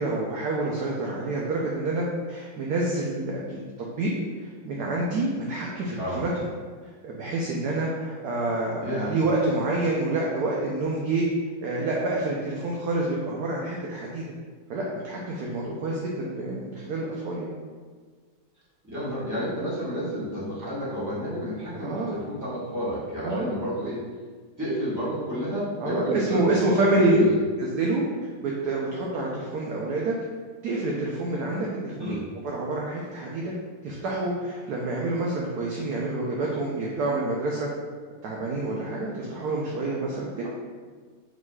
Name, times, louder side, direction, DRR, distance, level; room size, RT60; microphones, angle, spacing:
voice 1, 0.0-6.5 6.8-11.3 11.6-14.2 14.7-17.5 21.7-22.2 23.2-23.6 25.8-27.2 27.6-28.0 28.4-30.1 30.6-32.2 32.4-33.5 33.8-37.7 38.2-40.5, right 2 dB, 75° right, -3 dB, 0.9 m, -27 dB
voice 2, 8.8-9.1 18.8-24.0 24.6-26.8 27.1-27.3 32.0-32.2, equal, 10° right, -10 dB, 1.2 m, -30 dB
4.8 x 3.9 x 2.3 m, 1.5 s
omnidirectional pair, 2.2 m